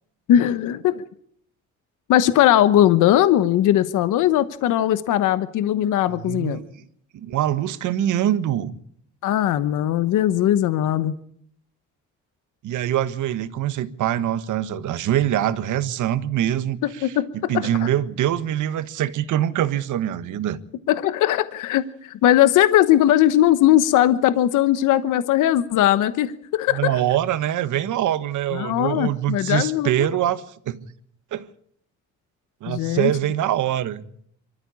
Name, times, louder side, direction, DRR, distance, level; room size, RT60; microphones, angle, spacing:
voice 1, 0.3-1.0 2.1-6.6 9.2-11.1 17.0-17.9 20.9-27.0 28.5-29.9 32.7-33.1, left 12 dB, 85° left, 1.1 m, -19 dB
voice 2, 6.1-6.7 7.1-8.7 12.6-20.6 26.7-30.8 31.3-31.5 32.6-34.0, right 11 dB, 80° right, 1.5 m, -24 dB
24.5 x 13.5 x 9.8 m
cardioid pair, 90°, 30 cm